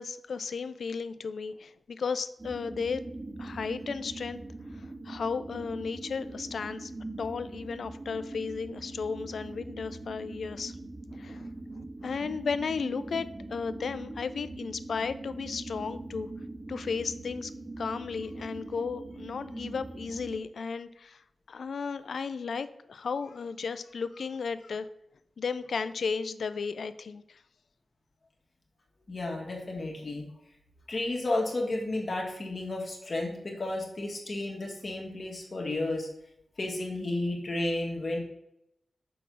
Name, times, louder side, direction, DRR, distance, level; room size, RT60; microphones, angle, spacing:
voice 1, 0.0-3.0 3.4-4.4 4.7-6.9 7.2-10.7 11.1-11.5 12.0-16.3 16.7-17.5 17.8-21.2 21.5-24.9 25.4-27.4, left 5 dB, 75° left, 12 dB, 0.4 m, -34 dB
sound 1, 2.4-20.4, right 2 dB, 35° right, 0.9 m, -42 dB
voice 2, 29.1-30.2 30.9-36.1 36.6-38.2, left 2 dB, 45° left, 0 dB, 1.6 m, -32 dB
5.9 x 3.9 x 6.1 m, 0.81 s
wide cardioid pair, 80°, 0 cm